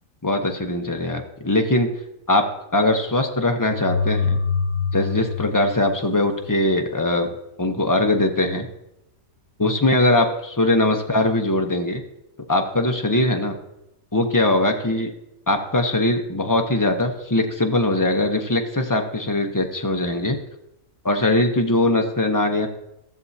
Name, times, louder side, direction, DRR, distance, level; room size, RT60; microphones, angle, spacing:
voice 1, 0.2-1.9 2.3-2.5 2.7-4.4 4.9-7.3 7.6-8.7 9.6-12.0 12.5-13.5 14.1-15.1 15.5-20.4 21.0-22.7, left 1 dB, 20° left, 3 dB, 0.5 m, -21 dB
sound 1, 3.7-6.6, left 5 dB, 75° right, 3.3 m, -25 dB
15.0 x 7.0 x 2.7 m, 0.85 s
omnidirectional pair, 1.5 m